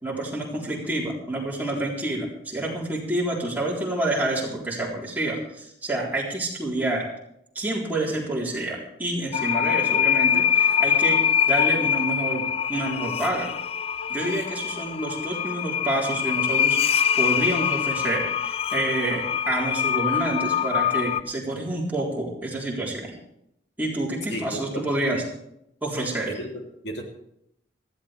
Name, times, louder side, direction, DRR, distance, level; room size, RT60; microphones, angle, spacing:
voice 1, 0.0-7.1 7.6-13.5 14.1-23.2 23.8-25.2 25.8-26.4, right 1 dB, 10° right, -4 dB, 3.9 m, -28 dB
sound 1, 9.3-21.2, left 8 dB, 30° left, 0.4 m, -24 dB
voice 2, 24.3-24.9 25.1-25.2 26.3-27.0, right 1 dB, 70° left, 1 dB, 3.1 m, -34 dB
19.0 x 15.0 x 3.4 m, 0.76 s
head